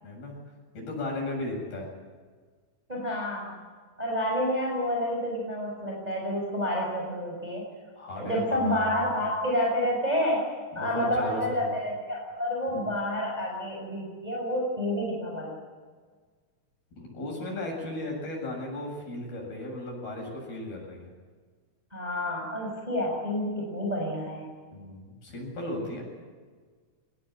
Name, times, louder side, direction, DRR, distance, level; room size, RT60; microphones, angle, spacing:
voice 1, 0.0-0.4 0.7-1.9 8.0-9.2 10.7-11.8 12.7-12.8 17.0-21.1 24.7-26.0, left 1 dB, 70° left, -1 dB, 9.8 m, -36 dB
voice 2, 2.9-3.6 4.0-7.7 8.2-10.5 10.7-15.5 21.9-24.5, equal, 10° right, -2 dB, 5.9 m, -29 dB
25.0 x 19.5 x 9.2 m, 1.5 s
omnidirectional pair, 4.6 m